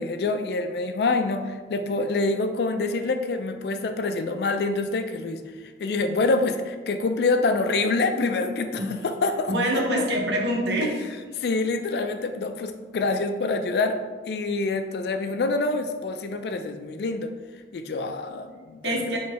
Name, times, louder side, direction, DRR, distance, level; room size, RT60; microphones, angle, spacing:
voice 1, 0.0-5.4 5.8-9.5 10.8-10.9 11.4-14.0 14.3-17.3 17.7-19.2, left 3 dB, 65° left, 7 dB, 0.3 m, -26 dB
voice 2, 9.5-10.9 11.2-11.3 18.8-19.2, equal, 80° right, 0 dB, 0.8 m, -25 dB
4.5 x 3.1 x 2.9 m, 1.4 s
head